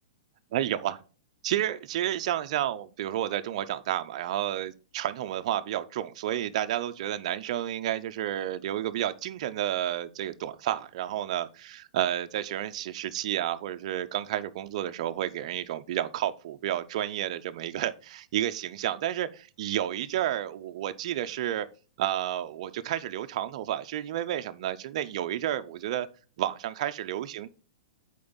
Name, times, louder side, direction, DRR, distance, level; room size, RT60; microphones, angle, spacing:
voice 1, 0.5-1.0 1.4-21.7 22.0-26.1 26.4-27.5, right 12 dB, 55° right, 0.6 m, -31 dB
8.4 x 4.5 x 3.9 m
hypercardioid pair, 150°, 4 cm